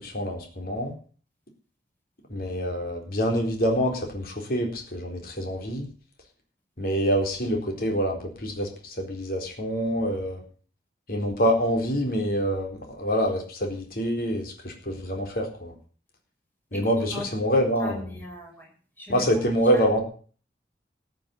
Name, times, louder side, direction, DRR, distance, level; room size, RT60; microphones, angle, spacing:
voice 1, 0.0-0.9 2.3-5.9 6.8-10.4 11.1-15.7 16.7-18.0 19.1-20.0, equal, 55° left, 3 dB, 4.1 m, -26 dB
voice 2, 16.7-17.3 17.8-18.7 19.0-19.3 19.7-19.8, left 1 dB, 10° left, -1 dB, 6.0 m, -39 dB
14.5 x 7.8 x 8.4 m, 0.41 s
head